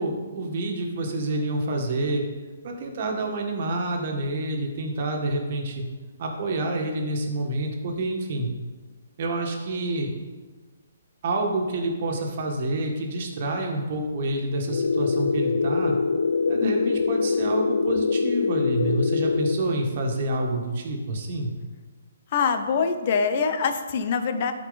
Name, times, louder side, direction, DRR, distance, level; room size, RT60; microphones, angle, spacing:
voice 1, 0.0-2.2 2.6-5.8 6.2-8.5 9.2-10.1 11.2-16.0 16.5-21.5, right 2 dB, 45° right, 1 dB, 1.6 m, -28 dB
sound 1, 14.6-19.6, left 4 dB, 80° left, 0.5 m, -24 dB
voice 2, 16.6-17.0 22.3-24.5, left 5 dB, 40° left, 8 dB, 0.7 m, -24 dB
12.5 x 4.6 x 4.1 m, 1.3 s
hypercardioid pair, 155°, 0 cm